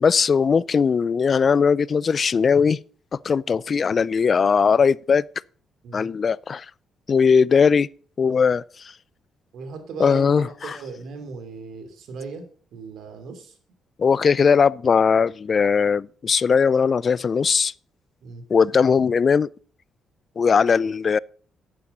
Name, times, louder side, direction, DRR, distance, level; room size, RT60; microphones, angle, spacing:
voice 1, 0.0-2.8 3.2-5.2 5.9-6.7 7.1-7.9 8.2-8.6 10.0-10.8 14.0-17.7 18.5-19.5 20.4-21.2, left 6 dB, 45° left, 0.4 m, -19 dB
voice 2, 9.5-12.4 12.7-13.5 18.2-18.4, right 4 dB, 75° right, 2.9 m, -37 dB
11.0 x 8.6 x 5.4 m
cardioid pair, 90°, 0 cm